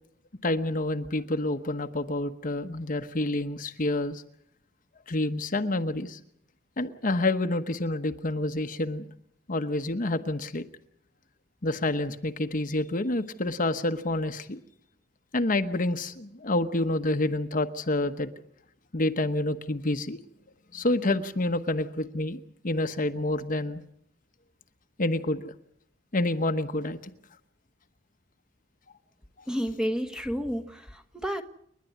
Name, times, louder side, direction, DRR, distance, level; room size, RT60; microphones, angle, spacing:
voice 1, 0.4-4.2 5.1-6.2 6.8-9.1 9.5-10.6 11.6-14.6 15.3-18.3 18.9-20.2 20.7-23.8 25.0-25.5 26.1-27.1, left 2 dB, 45° left, 7 dB, 1.1 m, -28 dB
voice 2, 29.5-31.4, equal, 5° right, 6 dB, 1.4 m, -31 dB
30.0 x 11.5 x 9.3 m, 0.72 s
head